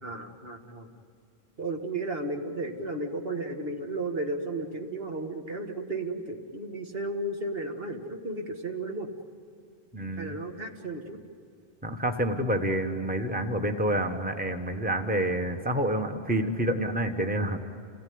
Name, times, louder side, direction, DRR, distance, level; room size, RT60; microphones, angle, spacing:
voice 1, 0.0-0.9 1.6-9.1 10.2-11.2, right 2 dB, 70° right, 3 dB, 2.1 m, -34 dB
voice 2, 9.9-10.4 11.8-17.6, right 1 dB, 10° right, 5 dB, 1.4 m, -28 dB
28.5 x 18.0 x 9.6 m, 2.4 s
omnidirectional pair, 1.0 m